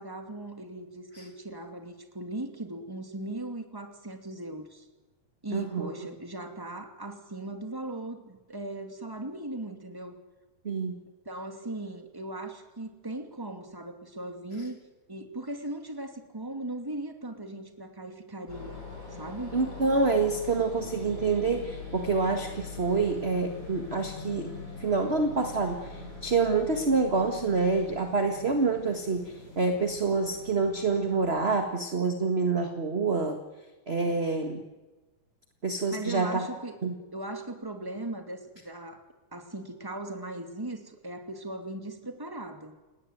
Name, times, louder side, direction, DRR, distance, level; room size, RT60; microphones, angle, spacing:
voice 1, 0.0-4.8 5.4-10.2 11.2-14.8 15.1-18.8 19.1-19.6 35.9-36.8 37.1-39.0 39.3-42.8, right 2 dB, 10° right, 6 dB, 2.3 m, -38 dB
voice 2, 5.5-5.9 10.6-11.0 19.5-24.5 24.8-33.4 33.9-34.6 35.6-36.4 36.8-36.9, right 4 dB, 25° right, 5 dB, 1.5 m, -27 dB
sound 1, 18.5-31.6, left 3 dB, 55° left, 8.9 m, -42 dB
29.0 x 18.5 x 9.3 m, 1.2 s
omnidirectional pair, 3.4 m